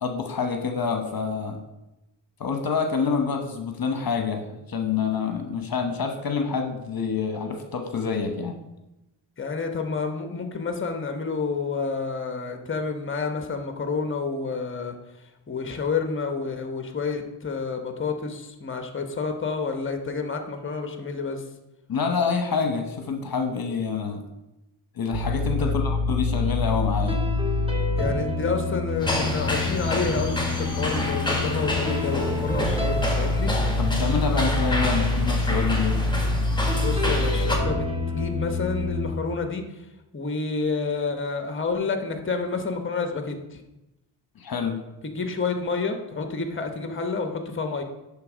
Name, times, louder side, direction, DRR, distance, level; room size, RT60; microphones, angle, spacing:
voice 1, 0.0-1.6 2.4-8.6 21.9-24.2 24.9-27.2 33.8-36.0 44.4-44.8, left 5 dB, 55° left, 4 dB, 1.0 m, -27 dB
voice 2, 9.4-14.9 15.5-21.4 25.6-25.7 28.0-33.5 36.7-39.6 40.1-43.6 45.0-47.8, left 4 dB, 30° left, 6 dB, 1.0 m, -29 dB
sound 1, 25.1-39.1, left 2 dB, 10° right, 1.5 m, -26 dB
sound 2, 29.0-37.6, left 1 dB, 10° left, 1.7 m, -29 dB
10.5 x 3.6 x 5.0 m, 0.96 s
cardioid pair, 60°, 43 cm